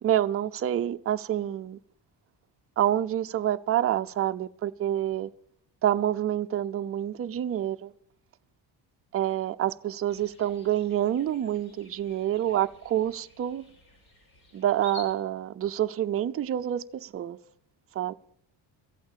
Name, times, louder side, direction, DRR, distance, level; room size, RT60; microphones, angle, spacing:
voice 1, 0.0-1.8 2.8-5.3 5.8-7.9 9.1-13.6 14.5-17.4 18.0-18.1, right 11 dB, 30° right, 0.5 m, -27 dB
sound 1, 10.1-15.2, left 3 dB, 60° left, 6.5 m, -51 dB
14.5 x 8.5 x 7.3 m
cardioid pair, 125°, 44 cm